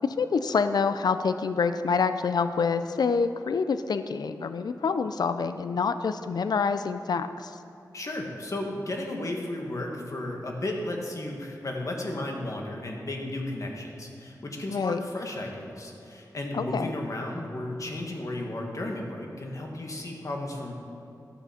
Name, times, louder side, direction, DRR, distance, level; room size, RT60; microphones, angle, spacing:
voice 1, 0.0-7.6 14.7-15.0 16.5-16.9, left 5 dB, 70° left, 10 dB, 0.4 m, -27 dB
voice 2, 7.9-20.7, left 1 dB, 50° left, 1 dB, 1.7 m, -34 dB
13.0 x 6.9 x 5.7 m, 2.8 s
wide cardioid pair, 85°, 7 cm